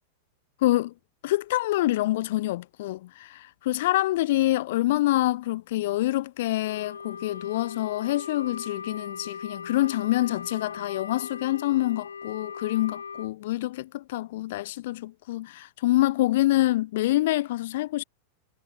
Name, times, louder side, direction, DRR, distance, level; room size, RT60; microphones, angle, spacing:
voice 1, 0.6-0.9 1.2-18.0, left 16 dB, 55° left, 1.2 m, -26 dB
Wind instrument woodwind instrument, 6.6-13.3, left 6 dB, 70° left, 1.9 m, -39 dB
figure-of-eight pair, 90°, 0 cm